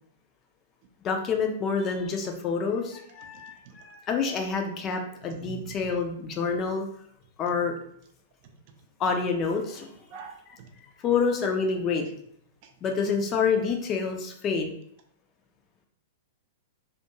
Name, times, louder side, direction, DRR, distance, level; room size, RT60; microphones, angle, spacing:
voice 1, 1.0-6.8 7.4-7.7 9.0-9.9 11.0-12.1 12.8-14.7, left 5 dB, 30° left, 3 dB, 0.4 m, -27 dB
voice 2, 3.3-3.7 5.3-5.7 10.1-10.7, right 7 dB, 45° right, 4 dB, 0.4 m, -44 dB
2.4 x 2.3 x 2.9 m, 0.68 s
figure-of-eight pair, 100°, 0 cm